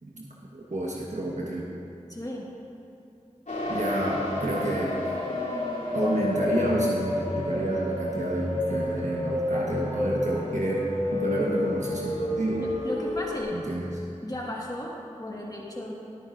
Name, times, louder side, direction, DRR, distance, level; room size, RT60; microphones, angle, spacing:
voice 1, 0.0-1.7 3.7-5.0 5.9-10.8 11.1-12.6 13.5-14.0, right 1 dB, 70° right, -4 dB, 1.3 m, -29 dB
voice 2, 2.1-2.5 12.6-13.6 14.2-15.9, left 1 dB, 30° left, -4 dB, 1.6 m, -35 dB
sound 1, 3.5-13.4, left 1 dB, 85° left, 2.9 m, -30 dB
19.5 x 9.5 x 2.6 m, 2.7 s
wide cardioid pair, 60°, 13 cm